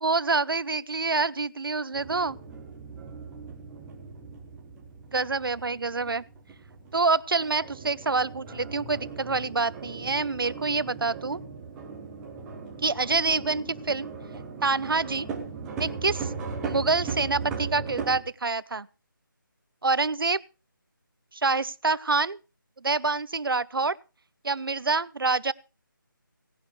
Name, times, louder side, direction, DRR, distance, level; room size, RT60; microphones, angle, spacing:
voice 1, 0.0-2.4 5.1-6.2 6.9-11.4 12.8-14.1 14.6-15.3 15.8-16.3 16.6-18.9 19.8-20.4 21.3-22.4 22.8-24.0 24.4-25.5, right 4 dB, 85° right, 0.7 m, -26 dB
sound 1, 1.9-18.2, right 5 dB, 5° right, 0.7 m, -38 dB
18.0 x 11.0 x 3.2 m
figure-of-eight pair, 175°, 11 cm